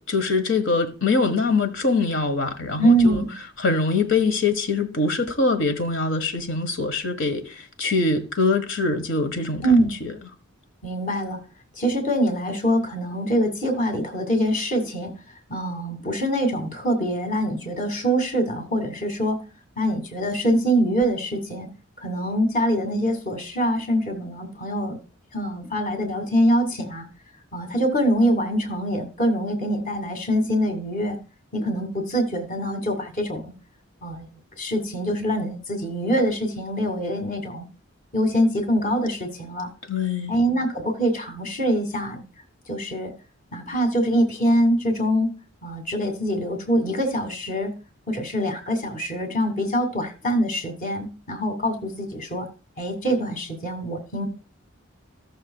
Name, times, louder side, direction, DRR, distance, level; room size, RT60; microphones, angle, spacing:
voice 1, 0.1-3.2 3.6-9.6 10.0-10.1 39.9-40.3, left 3 dB, 65° left, 1.5 m, -23 dB
voice 2, 2.8-3.3 9.6-9.9 10.8-11.4 11.8-15.1 15.5-19.4 19.8-21.7 22.0-25.0 25.3-27.1 27.5-31.2 31.5-33.5 34.0-34.3 34.6-37.6 38.1-39.7 40.3-42.2 42.7-43.1 43.5-45.3 45.6-47.7 48.1-52.5 52.8-54.3, equal, 40° left, 2.3 m, -24 dB
16.0 x 6.6 x 2.3 m
head